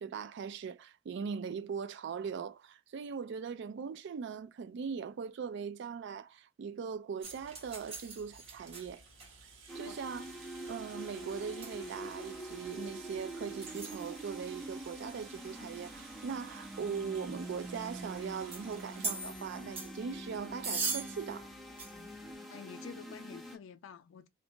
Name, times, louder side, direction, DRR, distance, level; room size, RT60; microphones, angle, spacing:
voice 1, 0.0-9.0 9.3-9.4 9.7-10.2 10.7-21.5, right 6 dB, 60° right, 0.3 m, -40 dB
sound 1, 7.2-22.3, right 4 dB, 30° right, 0.9 m, -45 dB
Rattle (instrument), 8.1-22.0 22.3-22.4 22.7-22.8, right 5 dB, 90° right, 0.9 m, -57 dB
sound 2, 9.7-23.6, right 1 dB, ahead, 0.5 m, -45 dB
voice 2, 22.5-24.3, left 7 dB, 70° left, 0.3 m, -49 dB
2.5 x 2.1 x 2.9 m
head